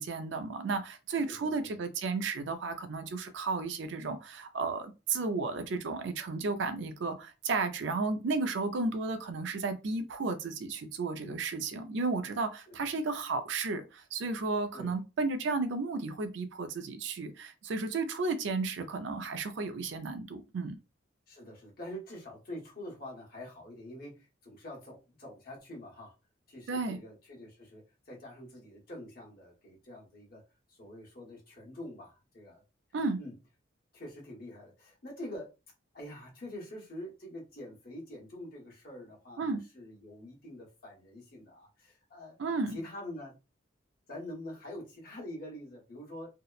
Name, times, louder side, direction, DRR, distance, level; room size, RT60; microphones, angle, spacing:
voice 1, 0.0-20.8 26.7-27.0 32.9-33.2 39.4-39.6 42.4-42.8, right 3 dB, 70° right, 0.4 m, -33 dB
voice 2, 1.3-1.8 12.7-12.9 14.7-15.0 21.3-26.1 26.5-30.4 30.7-32.6 33.2-33.3 33.9-35.5 35.9-42.4 42.7-43.4 44.1-46.3, left 1 dB, 50° left, 1.0 m, -45 dB
2.7 x 2.0 x 2.3 m
head